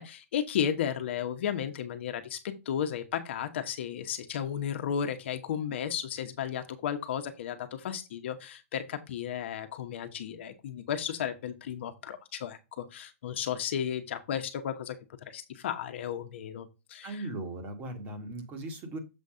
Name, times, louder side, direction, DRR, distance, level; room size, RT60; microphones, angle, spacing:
voice 1, 0.0-17.3, left 9 dB, 50° left, 7 dB, 1.1 m, -34 dB
voice 2, 17.0-19.0, right 2 dB, 20° right, 6 dB, 1.4 m, -38 dB
7.4 x 4.1 x 4.9 m, 0.26 s
hypercardioid pair, 170°, 8 cm